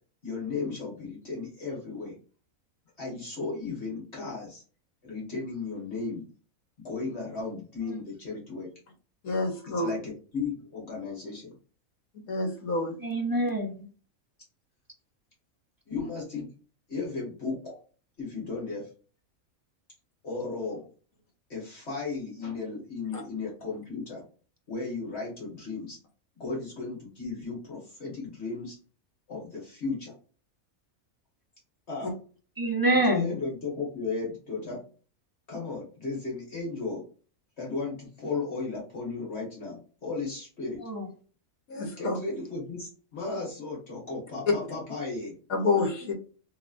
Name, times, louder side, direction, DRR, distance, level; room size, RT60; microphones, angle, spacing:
voice 1, 0.2-2.1 3.0-4.6 5.0-6.2 6.8-8.7 9.7-11.6 15.9-16.5 16.9-17.8 18.2-18.9 20.2-20.8 21.5-24.2 24.7-26.0 26.4-28.8 29.3-30.1 31.9-32.1 32.9-34.8 35.5-37.0 37.6-40.8 42.0-45.3, left 4 dB, 50° left, -4 dB, 1.8 m, -35 dB
voice 2, 9.2-9.9 12.3-13.0 23.1-23.2 32.0-32.1 41.7-42.2 45.5-46.1, left 3 dB, 75° left, 2 dB, 1.4 m, -28 dB
voice 3, 13.0-13.9 32.6-33.3 40.8-41.1, right 1 dB, 35° right, 1 dB, 0.3 m, -26 dB
3.8 x 3.2 x 2.5 m, 0.38 s
omnidirectional pair, 1.5 m